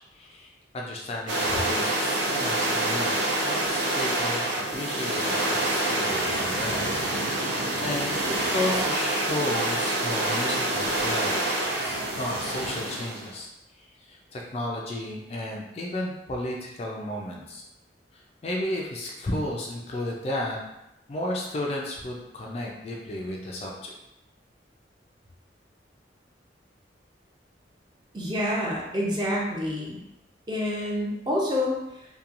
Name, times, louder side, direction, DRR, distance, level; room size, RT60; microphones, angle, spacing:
voice 1, 0.1-11.4 11.8-13.5 13.7-17.6 18.1-20.6 21.1-23.9, left 1 dB, 35° left, -1 dB, 0.3 m, -33 dB
sound 1, 1.3-13.3, right 1 dB, 75° right, 0.5 m, -27 dB
voice 2, 28.1-30.0 30.5-32.0, left 1 dB, 25° right, -3 dB, 0.5 m, -28 dB
2.8 x 2.2 x 2.4 m, 0.88 s
head